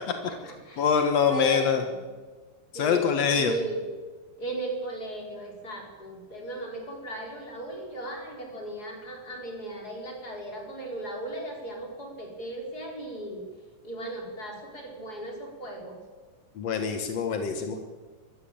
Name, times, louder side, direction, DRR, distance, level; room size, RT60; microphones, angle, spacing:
voice 1, 0.1-0.9 1.3-2.0 2.7-3.0 3.3-3.9 4.4-13.4 13.8-16.0 17.4-17.8, right 1 dB, 20° left, 1 dB, 4.9 m, -37 dB
voice 2, 0.8-1.8 2.7-3.5 16.6-17.8, left 6 dB, 70° left, 6 dB, 1.5 m, -24 dB
23.0 x 15.0 x 8.8 m, 1.4 s
omnidirectional pair, 5.1 m